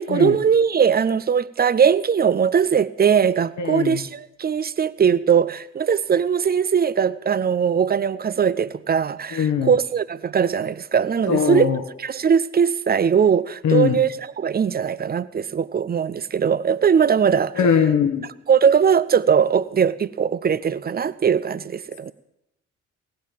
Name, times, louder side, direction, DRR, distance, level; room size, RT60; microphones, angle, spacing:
voice 1, 0.0-11.7 12.0-17.7 18.2-22.1, right 7 dB, 25° right, 0.5 m, -20 dB
voice 2, 3.6-4.0 9.3-9.7 11.3-11.8 13.6-14.0 17.6-18.2, left 7 dB, 50° left, 1.2 m, -20 dB
17.5 x 7.7 x 7.2 m
figure-of-eight pair, 40°, 38 cm